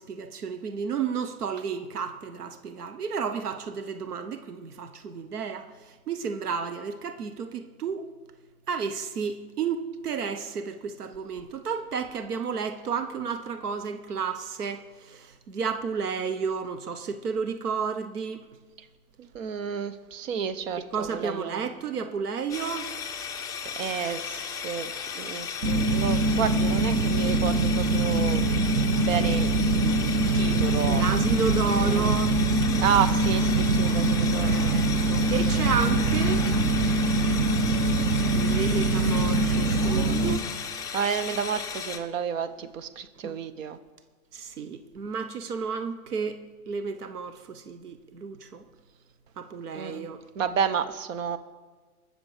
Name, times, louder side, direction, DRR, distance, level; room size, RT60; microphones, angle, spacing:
voice 1, 0.0-8.1 8.7-18.4 20.9-23.1 30.9-32.4 34.0-34.1 34.4-36.4 38.3-40.1 43.2-43.4 44.3-48.7 49.4-50.2, right 6 dB, 90° right, 8 dB, 1.1 m, -32 dB
voice 2, 19.2-21.7 23.6-28.5 29.0-31.0 31.8-32.1 32.8-34.6 40.9-43.8 49.7-50.0 50.3-51.4, right 7 dB, 60° right, 12 dB, 1.1 m, -31 dB
sound 1, 22.5-42.0, left 7 dB, 10° left, 0.5 m, -35 dB
sound 2, 25.6-40.4, right 2 dB, 35° right, 1.0 m, -23 dB
19.5 x 7.0 x 4.9 m, 1.4 s
hypercardioid pair, 125°, 45 cm